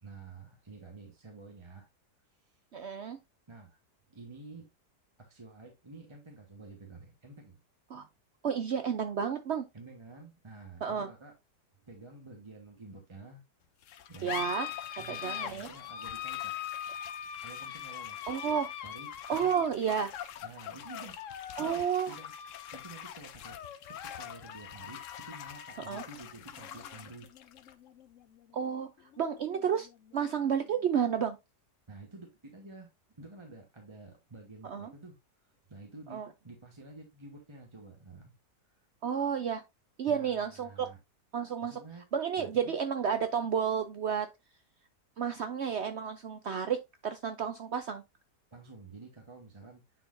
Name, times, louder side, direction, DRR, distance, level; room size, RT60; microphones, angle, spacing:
voice 1, 0.0-1.9 2.4-2.6 3.5-3.8 4.1-4.7 5.2-7.6 9.7-11.3 11.8-13.4 14.1-14.4 15.0-16.5 16.9-17.0 17.4-18.2 18.8-19.6 20.4-22.3 22.7-23.6 23.9-27.3 31.9-38.3 40.1-41.0 41.6-42.0 42.4-42.7 48.5-49.8, right 3 dB, 20° right, 1.1 m, -50 dB
voice 2, 2.7-3.2 7.9-8.0 8.4-9.6 10.8-11.1 14.2-14.7 15.1-15.7 18.3-18.7 19.3-20.1 21.6-22.1 25.9-26.0 28.5-28.9 29.2-29.9 30.1-31.4 34.6-34.9 36.1-36.3 39.0-39.6 40.0-40.9 41.3-41.8 42.1-44.3 45.2-48.0, right 7 dB, 70° right, 0.6 m, -31 dB
sound 1, 13.8-30.8, left 10 dB, 65° left, 0.8 m, -42 dB
9.4 x 4.2 x 2.6 m
omnidirectional pair, 1.8 m